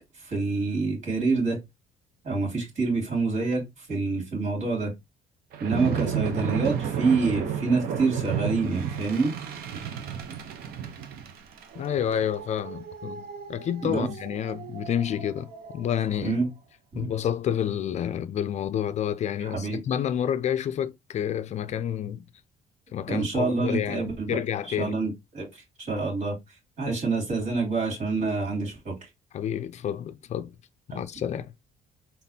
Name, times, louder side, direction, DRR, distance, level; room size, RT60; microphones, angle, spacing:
voice 1, 0.2-1.6 2.2-4.9 5.6-9.3 13.8-14.1 16.2-16.5 16.9-17.1 19.4-19.8 23.1-24.4 24.7-26.4 26.8-29.1 30.9-31.0, right 3 dB, 50° right, 2.9 m, -27 dB
sound 1, 5.5-16.1, right 8 dB, 75° right, 0.8 m, -33 dB
voice 2, 11.8-15.5 15.7-16.4 16.9-22.2 22.9-24.9 29.3-30.5 30.9-31.5, left 9 dB, 45° left, 0.4 m, -29 dB
4.1 x 3.9 x 2.7 m
cardioid pair, 115°, 16 cm